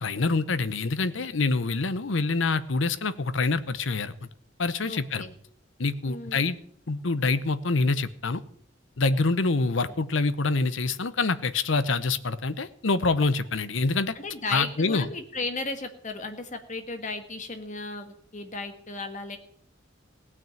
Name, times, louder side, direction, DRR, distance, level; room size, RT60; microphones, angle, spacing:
voice 1, 0.0-4.3 4.6-5.2 5.8-6.6 6.9-8.4 9.0-14.1 14.5-15.1, left 3 dB, 75° left, 14 dB, 0.8 m, -26 dB
voice 2, 4.9-5.3 6.1-6.5 14.1-19.4, left 3 dB, 40° left, 7 dB, 1.5 m, -35 dB
17.0 x 6.2 x 9.0 m, 0.65 s
head